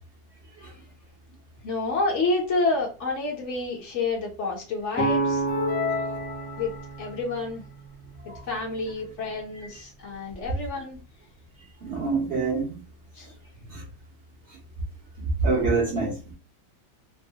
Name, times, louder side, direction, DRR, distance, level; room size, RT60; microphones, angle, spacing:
voice 1, 1.6-5.4 6.6-6.7 7.0-7.6 8.4-11.0 13.1-13.3, left 3 dB, 60° left, 0.8 m, -28 dB
sound 1, 4.9-8.8, right 2 dB, 15° left, 0.4 m, -30 dB
sound 2, 5.5-7.1, left 7 dB, 85° left, 0.6 m, -31 dB
voice 2, 11.8-12.8 13.7-13.8 15.2-16.4, right 4 dB, 65° right, 0.6 m, -26 dB
3.0 x 2.0 x 2.7 m
omnidirectional pair, 1.9 m